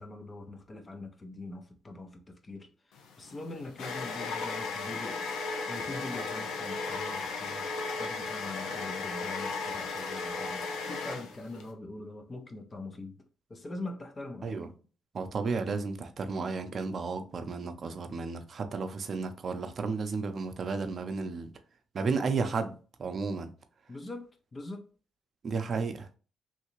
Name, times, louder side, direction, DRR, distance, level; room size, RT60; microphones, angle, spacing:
voice 1, 0.0-7.7 8.0-13.2 13.5-14.7 23.9-24.9, left 2 dB, 30° left, 0.5 m, -43 dB
sound 1, 3.0-11.7, left 4 dB, 85° left, 0.6 m, -35 dB
voice 2, 15.1-21.5 21.9-22.7 23.0-23.5 25.4-26.1, right 4 dB, 45° right, 0.5 m, -33 dB
3.2 x 2.8 x 3.0 m
cardioid pair, 85°, 0 cm